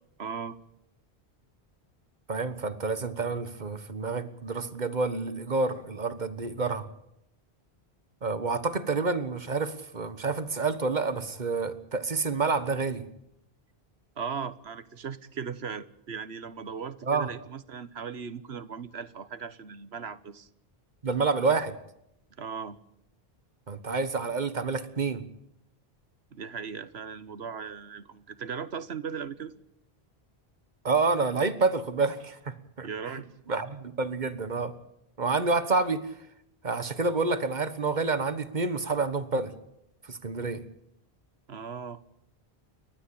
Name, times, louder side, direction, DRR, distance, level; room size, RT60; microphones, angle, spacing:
voice 1, 0.2-0.6 14.2-20.5 22.4-22.8 26.3-29.5 32.8-33.3 41.5-42.0, right 6 dB, 80° right, 1.4 m, -38 dB
voice 2, 2.3-6.8 8.2-13.0 17.0-17.3 21.0-21.7 23.7-25.2 30.8-33.2 33.5-34.7 35.2-36.0 36.6-39.5 40.0-40.6, right 4 dB, 45° right, 1.5 m, -28 dB
30.0 x 12.5 x 8.7 m
omnidirectional pair, 1.1 m